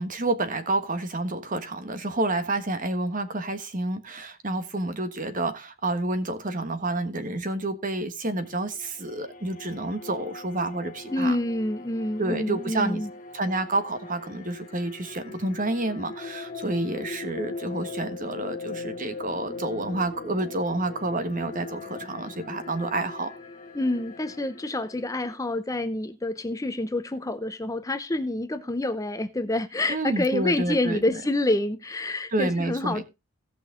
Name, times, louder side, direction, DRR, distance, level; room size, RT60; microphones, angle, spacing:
voice 1, 0.0-11.4 12.2-13.0 13.3-23.3 29.9-31.2 32.3-33.0, right 2 dB, 40° right, 1.4 m, -29 dB
sound 1, 8.4-25.3, left 3 dB, 40° left, 1.8 m, -40 dB
voice 2, 11.1-13.1 23.7-33.0, left 1 dB, 15° left, 0.6 m, -27 dB
17.0 x 6.1 x 3.7 m
head